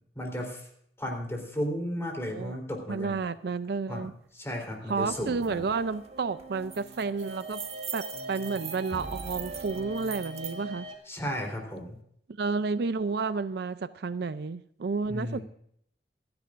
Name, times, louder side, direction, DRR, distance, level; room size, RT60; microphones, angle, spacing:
voice 1, 0.2-0.7 1.0-3.2 3.9-4.1 4.3-5.6 11.1-12.0 15.1-15.4, equal, 15° left, 1 dB, 3.7 m, -34 dB
voice 2, 2.9-4.1 4.9-7.6 7.9-10.9 12.4-15.4, right 4 dB, 65° right, 13 dB, 0.5 m, -31 dB
sound 1, 5.0-10.9, right 1 dB, 80° right, 2.2 m, -41 dB
sound 2, 5.4-5.5 5.8-6.1 6.4-10.6, right 8 dB, 35° right, 1.4 m, -42 dB
27.0 x 10.5 x 2.6 m, 0.68 s
head